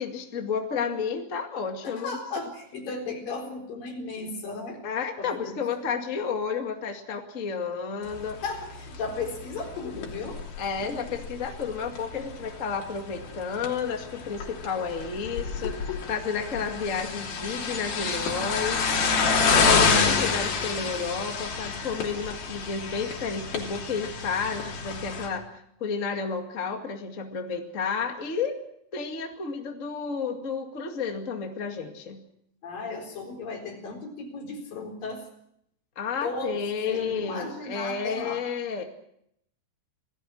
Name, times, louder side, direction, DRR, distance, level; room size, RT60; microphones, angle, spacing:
voice 1, 0.0-2.2 4.8-8.4 10.6-18.8 19.5-28.6 28.9-32.2 36.0-38.8, left 5 dB, 25° left, 4 dB, 2.0 m, -31 dB
voice 2, 1.8-4.8 5.2-6.0 8.4-10.4 10.9-11.2 19.4-20.3 32.6-35.3 36.2-38.5, left 3 dB, 70° left, 2 dB, 5.7 m, -36 dB
sound 1, 8.1-25.3, left 5 dB, 90° left, 4.9 m, -29 dB
27.5 x 18.0 x 6.3 m, 0.73 s
omnidirectional pair, 4.1 m